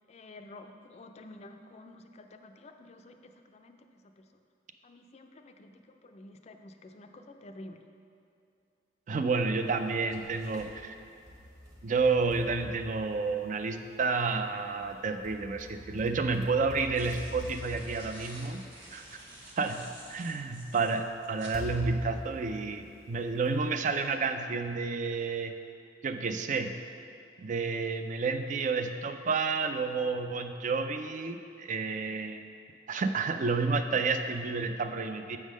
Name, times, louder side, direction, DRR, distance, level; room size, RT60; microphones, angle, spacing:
voice 1, 0.1-4.3 4.8-7.8, left 2 dB, 35° left, 6 dB, 0.4 m, -50 dB
voice 2, 9.1-10.9 11.8-18.6 18.9-19.0 19.6-25.5 26.0-26.8 27.4-32.4 32.9-35.4, right 4 dB, 45° right, 8 dB, 0.4 m, -30 dB
sound 1, 9.8-10.7 11.3-13.7 14.8-19.2 20.1-20.2 21.5-23.4, equal, 20° right, 0.9 m, -44 dB
sound 2, 16.8-21.6, right 1 dB, 85° right, 1.4 m, -50 dB
7.2 x 3.7 x 6.2 m, 2.6 s
head